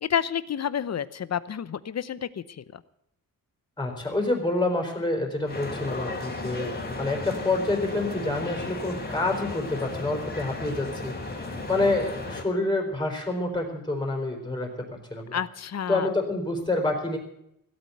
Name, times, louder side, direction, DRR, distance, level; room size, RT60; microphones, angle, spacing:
voice 1, 0.0-2.8 15.3-16.1, left 8 dB, 50° left, 16 dB, 0.8 m, -30 dB
voice 2, 3.8-15.4 15.9-17.2, left 2 dB, 10° left, 2 dB, 4.2 m, -28 dB
sound 1, 5.4-12.4, left 2 dB, 25° left, 3.3 m, -35 dB
16.0 x 8.7 x 9.2 m, 0.78 s
wide cardioid pair, 115°, 34 cm